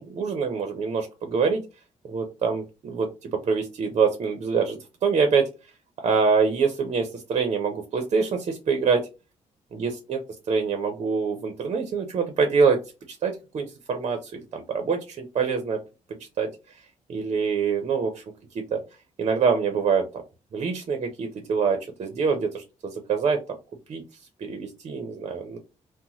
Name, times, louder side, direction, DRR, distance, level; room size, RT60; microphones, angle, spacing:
voice 1, 0.0-1.6 2.1-5.4 6.0-9.0 9.7-10.2 10.5-12.8 13.1-15.8 16.4-16.5 17.1-18.2 18.5-18.8 19.2-20.2 20.5-23.4 23.9-24.0 24.4-25.6, right 5 dB, 50° right, 5 dB, 0.6 m, -25 dB
2.9 x 2.1 x 3.9 m, 0.29 s
cardioid pair, 145°, 13 cm